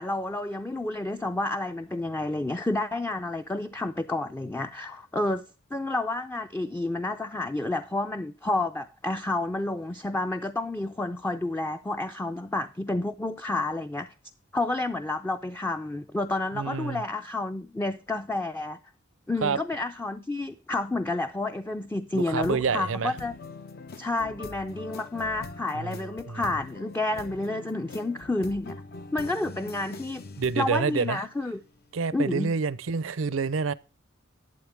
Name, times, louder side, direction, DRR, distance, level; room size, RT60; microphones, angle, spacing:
voice 1, 0.0-5.4 5.7-14.1 14.5-18.8 19.3-23.3 24.0-28.8 29.1-30.2 30.6-31.6 32.1-32.5, left 2 dB, 10° left, 0.4 m, -30 dB
voice 2, 16.5-17.0 19.4-19.6 22.1-23.1 25.7-26.0 26.3-26.6 30.4-31.2 31.9-33.7, right 5 dB, 80° right, 0.6 m, -28 dB
sound 1, 22.1-31.8, left 3 dB, 50° left, 0.7 m, -43 dB
11.5 x 8.9 x 3.4 m
head